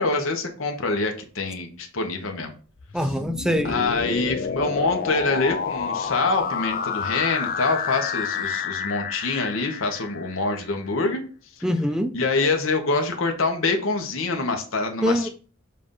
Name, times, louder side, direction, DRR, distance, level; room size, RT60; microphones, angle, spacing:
voice 1, 0.0-2.5 3.6-11.2 12.1-15.3, left 3 dB, 70° left, 4 dB, 1.0 m, -25 dB
sound 1, 2.8-10.7, left 6 dB, 45° left, 0.5 m, -29 dB
voice 2, 2.9-3.8 11.6-12.1 15.0-15.3, equal, 5° right, 7 dB, 0.6 m, -23 dB
7.4 x 2.6 x 5.5 m, 0.40 s
head